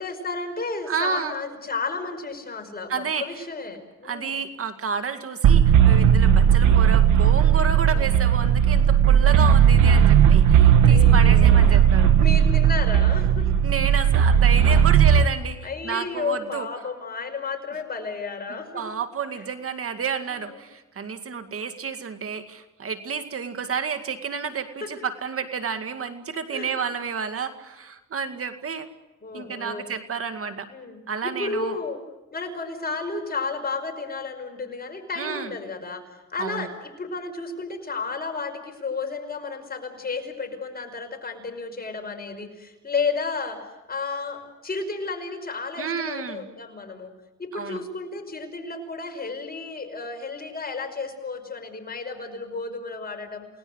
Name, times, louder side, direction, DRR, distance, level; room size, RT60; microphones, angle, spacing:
voice 1, 0.0-2.9 3.2-4.3 7.8-8.1 10.8-11.7 12.2-13.5 15.6-18.8 19.4-19.5 21.4-21.5 24.8-24.9 26.5-26.7 29.2-29.9 30.7-32.0 32.3-36.0 36.3-43.6 43.9-47.1 47.4-53.5, left 4 dB, 30° left, 5 dB, 5.4 m, -32 dB
voice 2, 0.9-1.3 2.9-3.4 4.0-12.1 13.6-16.7 18.7-28.9 29.3-30.7 31.1-31.8 35.2-35.5 36.4-36.7 45.8-46.5 47.5-47.8, right 6 dB, 50° right, 8 dB, 2.1 m, -30 dB
sound 1, 5.4-15.2, right 8 dB, 80° right, 1.6 m, -16 dB
29.0 x 19.5 x 8.0 m, 1.1 s
cardioid pair, 90°, 30 cm